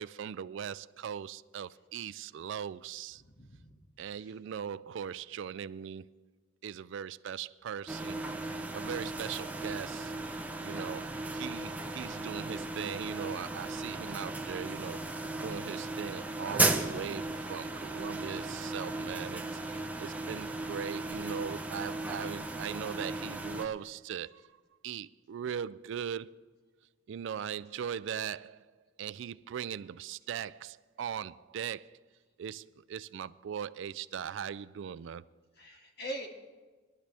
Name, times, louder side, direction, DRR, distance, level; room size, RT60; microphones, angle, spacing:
voice 1, 0.0-3.2 4.0-6.1 6.6-8.2 8.7-10.1 10.6-15.0 15.4-24.4 24.8-26.4 27.1-28.6 29.0-32.0 32.4-35.2, right 8 dB, 65° right, 0.3 m, -39 dB
voice 2, 3.2-3.8 4.2-4.4 11.0-11.2 35.5-36.3, right 1 dB, 55° left, 2.1 m, -43 dB
sound 1, 7.9-23.7, right 2 dB, 10° right, 0.8 m, -36 dB
21.0 x 12.0 x 3.4 m
head